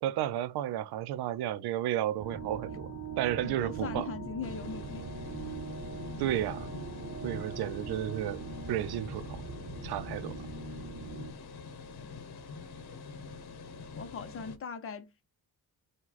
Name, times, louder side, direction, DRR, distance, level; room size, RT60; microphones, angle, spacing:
voice 1, 0.0-2.9 3.2-4.1 6.2-6.7 7.2-9.4 9.8-10.4, right 12 dB, 80° right, 0.5 m, -32 dB
sound 1, 2.2-11.3, right 4 dB, 30° right, 0.9 m, -41 dB
voice 2, 3.4-5.0 13.9-15.2, left 5 dB, 35° left, 0.6 m, -40 dB
sound 2, 4.4-14.6, left 5 dB, 80° left, 0.8 m, -45 dB
4.8 x 2.2 x 4.0 m
cardioid pair, 160°, 38 cm